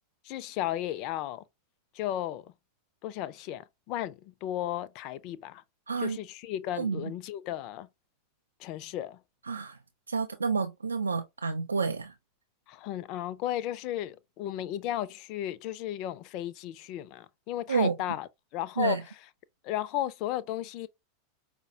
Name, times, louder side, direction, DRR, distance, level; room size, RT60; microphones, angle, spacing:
voice 1, 0.3-1.4 2.0-2.4 3.0-5.6 6.0-7.9 8.6-9.2 12.7-19.0 19.6-20.9, left 13 dB, 45° left, 0.4 m, -34 dB
voice 2, 5.9-6.2 6.7-7.1 9.4-9.8 10.1-12.1 17.7-18.0 18.8-19.0, right 5 dB, 80° right, 0.3 m, -29 dB
5.1 x 2.1 x 2.7 m
figure-of-eight pair, 85°, 0 cm